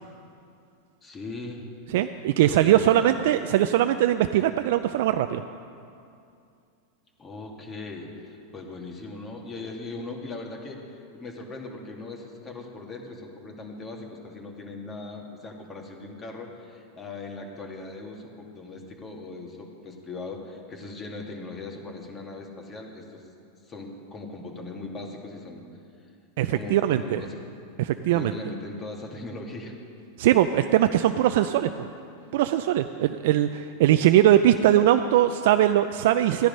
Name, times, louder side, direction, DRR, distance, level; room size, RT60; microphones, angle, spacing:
voice 1, 1.0-1.7 2.4-3.1 7.2-23.2 23.6-25.6 26.5-27.4 28.1-29.7, left 3 dB, 25° left, 1 dB, 2.3 m, -39 dB
voice 2, 1.9-5.4 26.4-27.2 27.8-28.3 30.2-31.7 32.3-36.5, right 12 dB, 65° right, 8 dB, 0.4 m, -21 dB
14.5 x 10.5 x 5.4 m, 2.5 s
hypercardioid pair, 110°, 0 cm